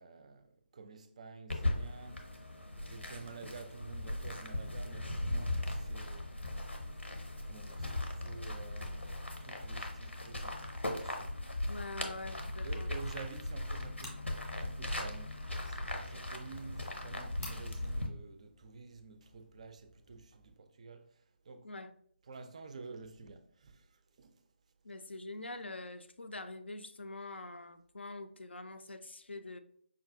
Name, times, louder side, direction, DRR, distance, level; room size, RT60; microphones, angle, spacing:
voice 1, 0.0-6.3 7.4-10.7 11.0-11.8 12.6-14.2 14.5-21.7 22.3-24.4, right 4 dB, 35° right, 0.3 m, -50 dB
sound 1, 1.5-18.1, left 1 dB, 90° left, 0.8 m, -38 dB
voice 2, 11.7-12.9 21.6-21.9 24.8-29.6, left 2 dB, 70° left, 0.4 m, -45 dB
sound 2, 12.6-20.6, left 1 dB, ahead, 0.7 m, -56 dB
5.3 x 2.3 x 2.5 m
figure-of-eight pair, 150°, 6 cm